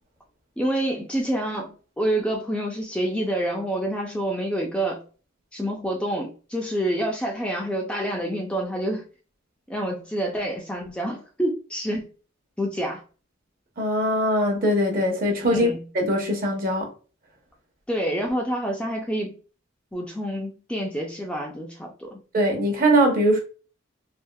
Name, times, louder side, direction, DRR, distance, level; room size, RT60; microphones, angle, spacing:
voice 1, 0.6-5.0 5.5-9.0 9.7-12.1 12.6-13.0 15.5-15.8 17.9-19.4 19.9-22.2, right 1 dB, 5° left, 0.4 m, -27 dB
voice 2, 13.8-15.7 15.9-16.9 22.3-23.4, equal, 45° right, 0.8 m, -21 dB
3.4 x 2.4 x 2.2 m
head